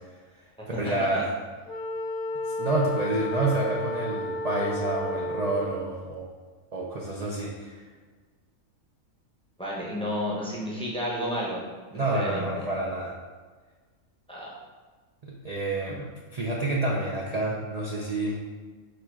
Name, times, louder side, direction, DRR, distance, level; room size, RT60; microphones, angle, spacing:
voice 1, 0.8-1.3 2.4-6.2 6.7-7.8 11.9-13.1 15.2-18.4, right 2 dB, 80° right, -3 dB, 0.3 m, -28 dB
Wind instrument woodwind instrument, 1.7-5.8, left 1 dB, 60° left, 0.8 m, -32 dB
voice 2, 9.6-11.6 12.1-12.5 14.3-14.6, equal, 5° left, -5 dB, 0.5 m, -31 dB
4.8 x 2.3 x 4.5 m, 1.4 s
omnidirectional pair, 1.5 m